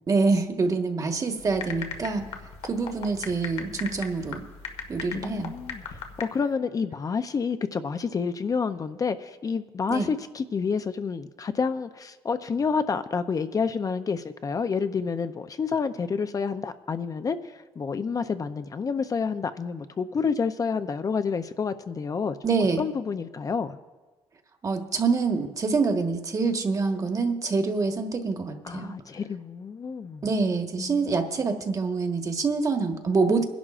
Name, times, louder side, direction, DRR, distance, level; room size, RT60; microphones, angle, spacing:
voice 1, 0.1-2.2 2.6-4.4 4.9-5.5 9.9-10.1 22.4-22.8 24.6-28.9 30.2-33.4, right 4 dB, 35° right, 5 dB, 1.4 m, -26 dB
sound 1, 1.4-6.2, left 6 dB, 85° left, 1.5 m, -38 dB
voice 2, 5.1-22.4 22.8-23.8 28.6-30.2 30.8-31.1 33.3-33.4, left 5 dB, 35° left, 10 dB, 0.6 m, -29 dB
26.0 x 11.0 x 2.5 m, 1.2 s
cardioid pair, 95°, 10 cm